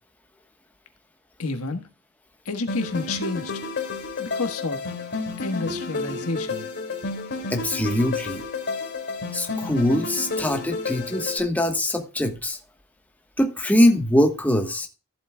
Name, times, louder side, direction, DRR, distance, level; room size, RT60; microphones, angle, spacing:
voice 1, 1.4-1.8 2.4-3.6 4.2-4.9 5.4-6.7, left 3 dB, 90° left, 1.5 m, -29 dB
sound 1, 2.7-11.4, left 3 dB, 55° left, 2.7 m, -31 dB
voice 2, 7.5-8.4 9.3-12.6 13.4-14.9, left 1 dB, 5° left, 1.2 m, -22 dB
14.0 x 8.1 x 2.3 m
head